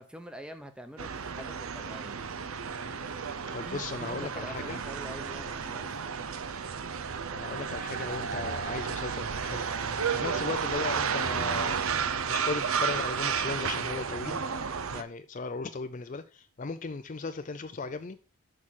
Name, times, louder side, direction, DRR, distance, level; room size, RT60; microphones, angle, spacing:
voice 1, 0.0-2.2 3.5-6.1, equal, 5° right, 0.8 m, -45 dB
sound 1, 1.0-15.0, right 6 dB, 75° right, 0.7 m, -32 dB
voice 2, 3.5-4.8 7.3-11.8 12.3-14.6 14.9-18.2, left 4 dB, 35° left, 0.4 m, -37 dB
6.4 x 6.2 x 7.3 m
head